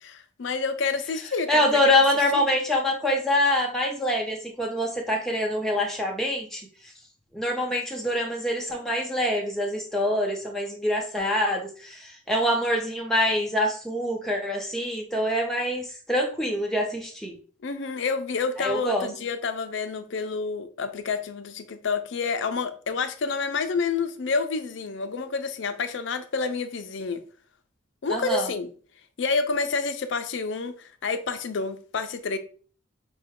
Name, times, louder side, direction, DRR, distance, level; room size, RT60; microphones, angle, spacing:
voice 1, 0.0-1.6 2.3-2.5 17.6-27.2 28.0-28.7 29.2-32.4, left 4 dB, 65° left, 0.5 m, -29 dB
voice 2, 1.5-6.6 7.3-17.4 18.6-19.1 28.1-28.5, left 1 dB, ahead, 0.8 m, -25 dB
5.6 x 2.2 x 3.6 m
head